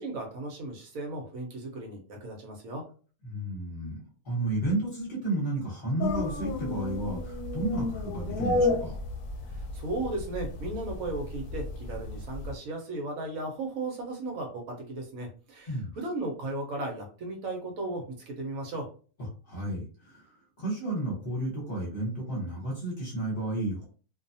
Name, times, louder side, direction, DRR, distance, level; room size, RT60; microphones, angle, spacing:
voice 1, 0.0-2.8 9.5-18.9, right 2 dB, 70° right, 2 dB, 1.1 m, -36 dB
voice 2, 3.2-8.9 15.7-15.9 19.2-23.9, right 2 dB, 40° left, -4 dB, 1.1 m, -32 dB
sound 1, 6.0-12.5, left 3 dB, 90° left, 1.2 m, -32 dB
2.6 x 2.3 x 2.6 m, 0.39 s
omnidirectional pair, 1.6 m